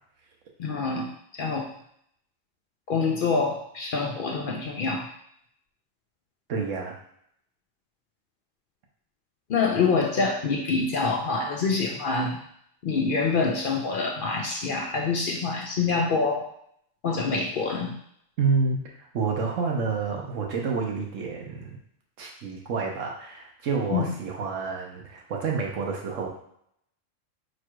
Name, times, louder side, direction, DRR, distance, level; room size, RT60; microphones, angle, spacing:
voice 1, 0.6-1.7 2.9-5.1 9.5-12.4 12.8-16.5 17.0-18.0 23.9-24.1, left 4 dB, 60° left, 1 dB, 0.6 m, -26 dB
voice 2, 6.5-7.0 18.4-21.8 22.2-26.3, right 4 dB, 85° right, 0 dB, 1.3 m, -29 dB
4.5 x 2.4 x 4.6 m, 0.71 s
omnidirectional pair, 1.3 m